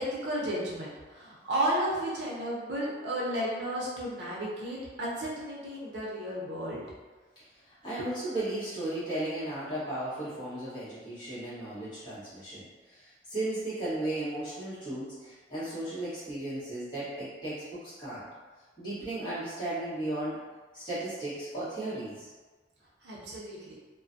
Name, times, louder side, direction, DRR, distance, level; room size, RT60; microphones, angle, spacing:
voice 1, 0.0-6.8 23.0-23.8, right 1 dB, 75° right, -5 dB, 0.6 m, -33 dB
voice 2, 7.7-18.2 18.8-20.4 20.7-22.3, right 1 dB, 25° left, -12 dB, 1.2 m, -35 dB
2.5 x 2.2 x 2.5 m, 1.3 s
head